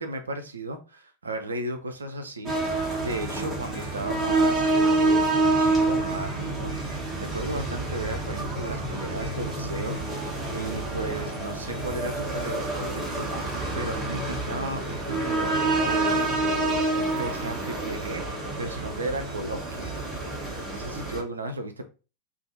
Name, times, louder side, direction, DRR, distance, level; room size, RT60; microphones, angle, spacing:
voice 1, 0.0-10.0 10.5-20.0 20.7-21.9, right 2 dB, 75° right, 6 dB, 0.5 m, -35 dB
sound 1, 2.5-21.2, right 2 dB, 10° right, 1.2 m, -27 dB
2.7 x 2.5 x 3.8 m, 0.33 s
figure-of-eight pair, 90°, 0 cm